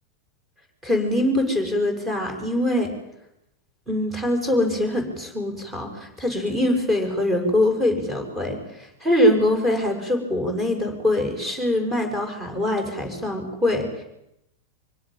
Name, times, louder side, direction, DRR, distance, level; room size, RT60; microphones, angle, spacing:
voice 1, 0.8-2.9 3.9-14.0, left 1 dB, 15° right, 5 dB, 6.5 m, -23 dB
25.0 x 17.0 x 9.1 m, 0.82 s
figure-of-eight pair, 90°, 0 cm